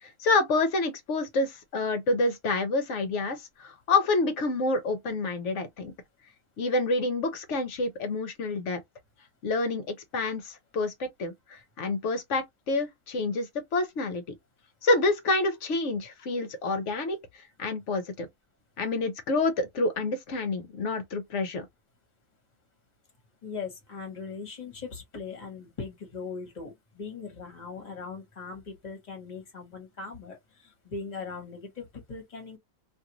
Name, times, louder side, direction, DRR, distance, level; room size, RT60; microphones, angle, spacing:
voice 1, 0.0-5.9 6.6-8.8 9.4-14.2 14.8-17.2 17.6-18.3 18.8-21.7, left 3 dB, 60° left, 0.9 m, -28 dB
voice 2, 23.4-32.6, left 5 dB, 30° left, 1.1 m, -40 dB
2.6 x 2.5 x 2.9 m
omnidirectional pair, 1.6 m